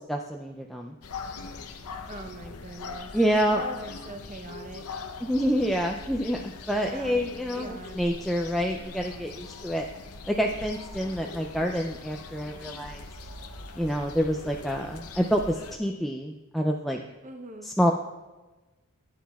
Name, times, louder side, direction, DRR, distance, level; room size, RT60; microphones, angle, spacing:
voice 1, 0.1-0.9 3.1-3.6 5.2-6.4 6.7-9.9 10.3-13.0 13.8-17.0 17.6-17.9, equal, ahead, 1 dB, 0.3 m, -27 dB
sound 1, 1.0-15.8, left 4 dB, 85° left, 0.7 m, -41 dB
voice 2, 2.1-3.1 3.5-5.0 6.7-7.2 7.5-8.0 17.2-17.7, right 2 dB, 35° right, 6 dB, 0.7 m, -42 dB
12.5 x 9.3 x 2.3 m, 1.2 s
head